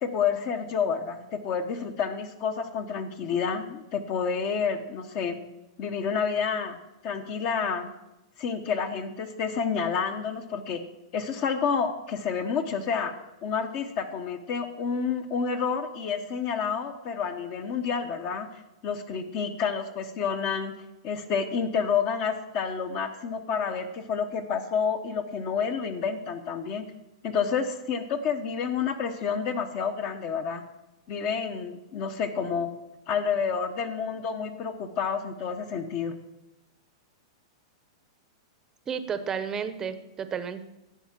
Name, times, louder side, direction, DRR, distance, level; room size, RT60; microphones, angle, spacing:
voice 1, 0.0-5.4 5.8-6.8 7.0-7.9 8.4-10.8 11.1-13.1 13.4-20.7 21.0-26.9 27.2-30.6 31.1-32.7 33.1-36.1, left 6 dB, 35° left, 7 dB, 1.0 m, -29 dB
voice 2, 38.9-40.6, right 7 dB, 15° right, 11 dB, 0.8 m, -32 dB
12.0 x 8.0 x 7.4 m, 0.97 s
supercardioid pair, 155°, 3 cm